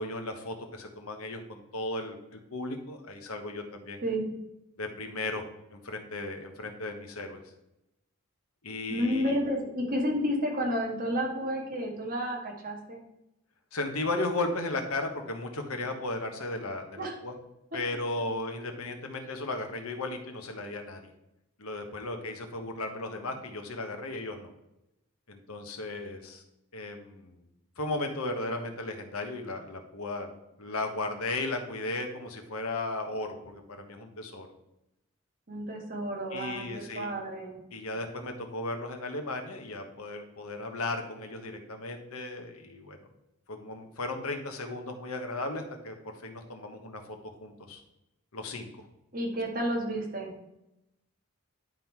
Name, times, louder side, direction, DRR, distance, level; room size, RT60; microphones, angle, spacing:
voice 1, 0.0-4.0 4.8-5.4 5.7-7.4 8.6-9.4 13.7-17.3 17.7-21.1 21.6-24.5 25.3-26.4 26.7-27.4 27.8-30.3 30.6-34.5 36.3-37.1 37.7-43.0 43.5-47.8 48.3-48.9, left 2 dB, 80° left, 4 dB, 1.2 m, -35 dB
voice 2, 8.9-13.0 17.0-17.2 23.2-23.3 35.5-37.6 49.1-50.3, equal, 40° right, 0 dB, 1.8 m, -31 dB
11.0 x 3.9 x 4.6 m, 0.89 s
head